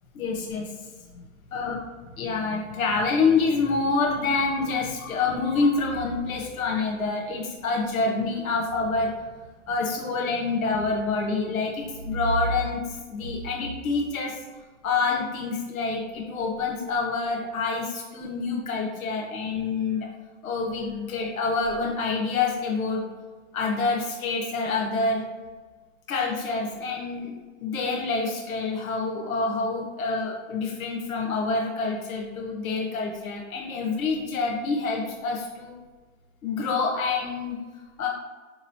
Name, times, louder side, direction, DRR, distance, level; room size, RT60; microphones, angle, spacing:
voice 1, 0.1-1.2 1.5-1.8 2.2-9.2 9.7-14.4 14.8-20.1 20.4-23.1 23.5-25.3 26.1-35.7 36.4-37.6 38.0-38.1, left 4 dB, 90° left, -1 dB, 0.8 m, -27 dB
4.5 x 3.0 x 2.7 m, 1.3 s
hypercardioid pair, 130°, 41 cm